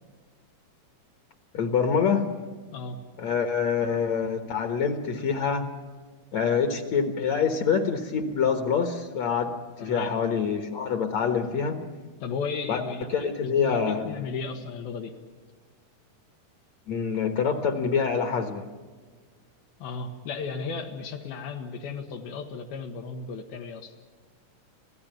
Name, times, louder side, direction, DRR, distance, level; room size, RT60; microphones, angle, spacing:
voice 1, 1.5-2.3 3.2-5.7 6.3-11.8 12.7-12.8 13.1-14.1 16.9-18.7, left 6 dB, 55° left, 6 dB, 2.2 m, -26 dB
voice 2, 9.8-10.1 12.2-15.1 19.8-23.9, left 5 dB, 80° left, 2 dB, 3.3 m, -35 dB
27.0 x 16.5 x 9.1 m, 1.5 s
omnidirectional pair, 4.3 m